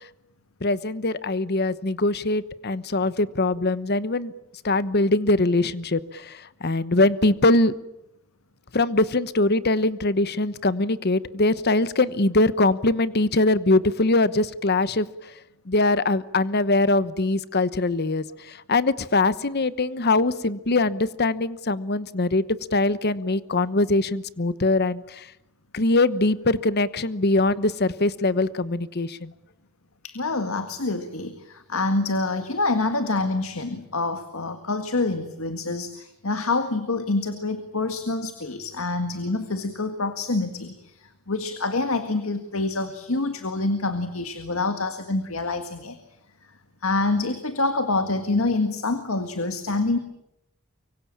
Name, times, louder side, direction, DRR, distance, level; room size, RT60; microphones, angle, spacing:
voice 1, 0.6-4.3 4.6-7.7 8.7-15.1 15.7-22.4 22.7-25.3 25.7-29.3, left 2 dB, 50° left, 15 dB, 1.1 m, -22 dB
voice 2, 30.0-46.0 46.4-46.5 46.8-50.0, left 3 dB, 90° left, 8 dB, 1.9 m, -26 dB
24.5 x 24.5 x 8.7 m, 0.86 s
head